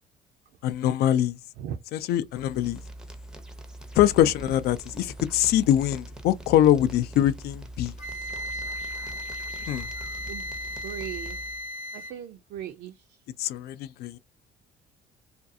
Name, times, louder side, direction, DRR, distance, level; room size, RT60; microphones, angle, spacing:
voice 1, 0.6-1.4 1.9-2.8 4.0-7.9 9.7-9.9 13.4-14.2, left 12 dB, 70° left, 0.4 m, -23 dB
sound 1, 2.3-11.7, right 1 dB, 5° right, 0.5 m, -42 dB
Wind instrument woodwind instrument, 8.0-12.2, equal, 45° left, 0.8 m, -36 dB
voice 2, 10.8-11.4 11.9-12.9, right 10 dB, 75° right, 0.4 m, -37 dB
2.5 x 2.3 x 2.5 m
cardioid pair, 110°, 17 cm